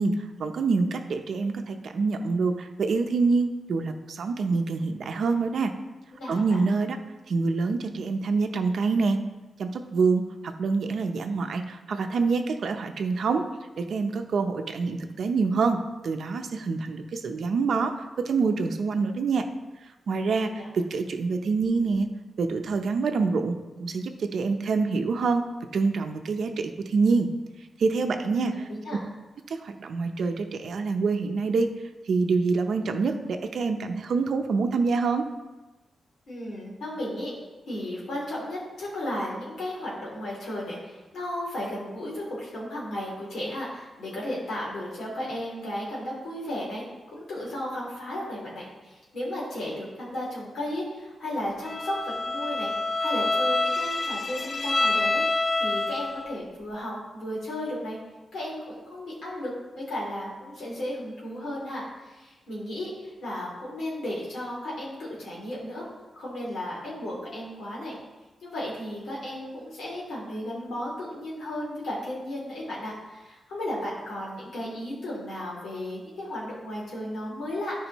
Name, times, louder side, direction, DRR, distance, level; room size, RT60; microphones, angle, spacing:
voice 1, 0.0-5.7 6.3-7.0 7.3-9.2 9.6-13.4 13.8-17.9 18.3-19.4 20.1-20.5 20.7-22.1 22.4-25.4 25.7-27.3 27.8-28.7 29.5-31.7 32.1-35.2, right 4 dB, 60° right, 6 dB, 0.7 m, -26 dB
voice 2, 6.1-6.6 20.5-20.7 28.0-28.4 28.7-29.0 36.3-37.3 37.7-55.2 55.6-58.0 58.3-65.9 66.1-68.0 68.4-77.9, left 1 dB, 75° left, -5 dB, 2.9 m, -34 dB
Bowed string instrument, 51.7-56.3, left 2 dB, 30° left, 0.3 m, -27 dB
13.5 x 4.9 x 3.1 m, 1.1 s
wide cardioid pair, 155°, 0 cm